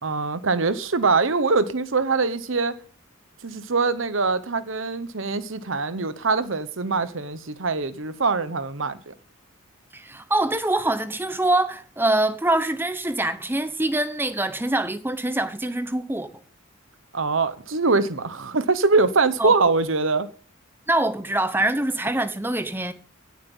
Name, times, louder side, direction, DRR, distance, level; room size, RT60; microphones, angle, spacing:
voice 1, 0.0-2.8 3.4-9.1 17.1-20.3, right 4 dB, 70° right, 1.0 m, -23 dB
voice 2, 9.9-16.4 19.4-19.5 20.9-22.9, right 1 dB, 10° right, 0.9 m, -24 dB
16.5 x 7.4 x 5.5 m
head